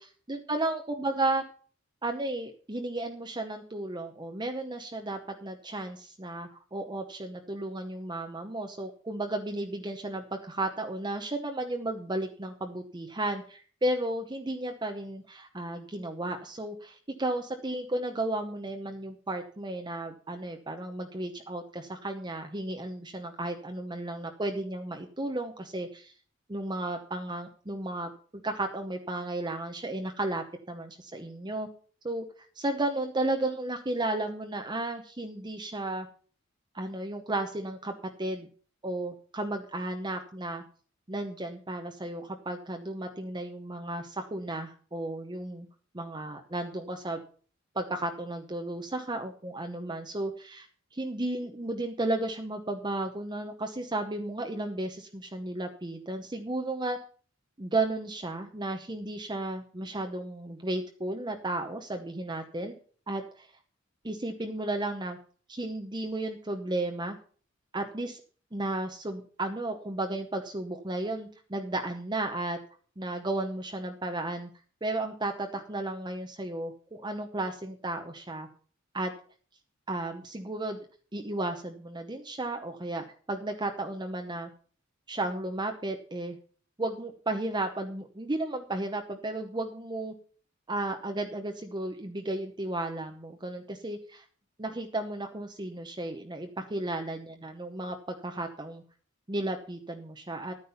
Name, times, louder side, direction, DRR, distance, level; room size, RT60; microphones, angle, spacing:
voice 1, 0.3-1.4 2.0-26.1 26.5-31.7 32.0-32.2 32.5-36.1 36.7-37.9 38.2-38.5 38.8-40.6 41.1-45.7 45.9-47.2 47.7-50.7 50.9-57.0 57.6-62.8 63.1-63.5 64.0-65.2 65.5-67.2 67.7-68.2 68.5-72.6 73.0-74.5 74.8-78.5 78.9-79.1 79.9-80.8 81.1-84.5 85.1-86.4 86.8-90.1 90.7-94.2 94.6-98.8 99.3-100.5, right 2 dB, 20° right, 4 dB, 0.9 m, -34 dB
11.5 x 9.6 x 5.7 m, 0.44 s
head